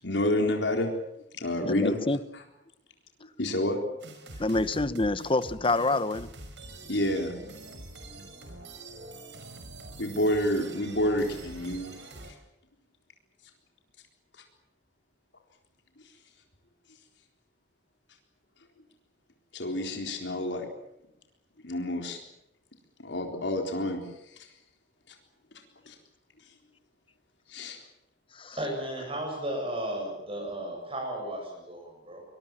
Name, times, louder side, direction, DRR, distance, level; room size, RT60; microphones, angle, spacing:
voice 1, 0.0-0.9 1.3-2.0 2.3-2.4 3.4-3.8 6.9-7.3 10.0-11.9 19.5-20.7 21.6-22.2 23.0-24.0 24.4-24.5 25.9-26.0 27.5-27.8, left 1 dB, 85° left, 3 dB, 4.0 m, -28 dB
voice 2, 1.6-2.2 4.4-6.3 28.4-28.6, left 2 dB, 30° left, 14 dB, 1.1 m, -26 dB
sound 1, 4.0-12.3, right 2 dB, 80° right, 5.4 m, -45 dB
voice 3, 28.6-32.2, right 1 dB, 35° right, 0 dB, 7.7 m, -34 dB
24.5 x 22.0 x 7.6 m, 0.83 s
head